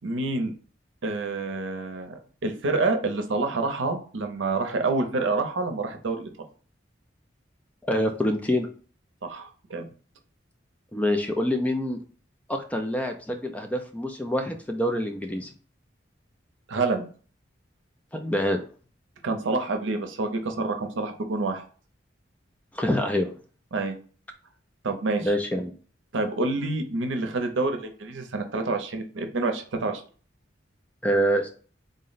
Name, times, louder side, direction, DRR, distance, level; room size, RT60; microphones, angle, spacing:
voice 1, 0.0-0.5 1.0-6.3 9.2-9.9 16.7-17.1 19.2-21.6 23.7-23.9 24.8-25.3 26.1-30.0, right 3 dB, 85° right, 6 dB, 0.6 m, -27 dB
voice 2, 7.9-8.7 10.9-12.0 12.5-15.5 18.1-18.6 22.7-23.3 25.2-25.7 31.0-31.5, equal, 10° left, 4 dB, 0.3 m, -26 dB
3.7 x 2.1 x 3.9 m, 0.40 s
head